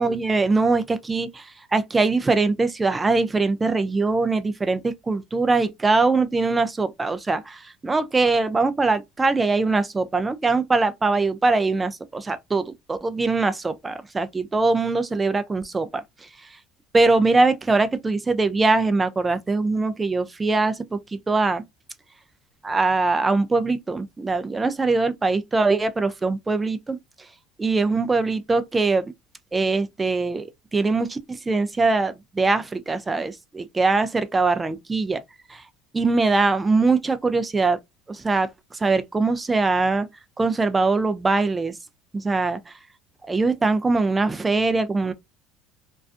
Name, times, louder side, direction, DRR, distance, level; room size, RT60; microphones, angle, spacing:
voice 1, 0.0-16.3 16.9-21.6 22.6-27.0 27.6-29.1 29.5-35.2 35.5-35.6 35.9-37.8 38.1-40.1 40.4-41.7 42.1-42.7 43.3-45.1, right 3 dB, 15° right, 0.3 m, -22 dB
2.4 x 2.3 x 2.4 m
cardioid pair, 135°, 0 cm